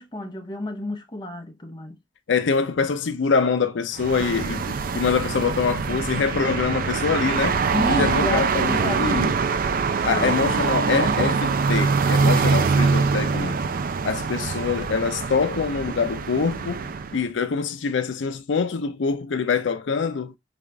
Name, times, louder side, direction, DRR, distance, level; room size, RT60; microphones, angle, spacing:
voice 1, 0.0-2.0 7.7-9.3 10.1-10.6, left 1 dB, 25° left, 0.8 m, -31 dB
voice 2, 2.3-7.6 7.9-9.3 10.0-13.7 14.0-20.3, left 5 dB, 85° left, 0.5 m, -24 dB
sound 1, 3.9-17.2, right 5 dB, 50° right, 0.4 m, -24 dB
5.0 x 2.4 x 3.1 m
head